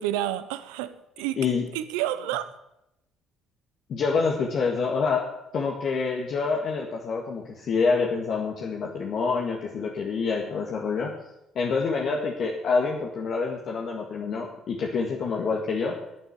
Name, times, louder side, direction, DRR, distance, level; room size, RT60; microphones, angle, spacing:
voice 1, 0.0-1.4 1.7-2.5, right 13 dB, 80° right, 13 dB, 0.8 m, -30 dB
voice 2, 3.9-5.2 5.5-11.1 11.5-16.0, left 4 dB, 60° left, 0 dB, 1.8 m, -27 dB
11.0 x 8.5 x 8.1 m, 0.85 s
hypercardioid pair, 60°, 0 cm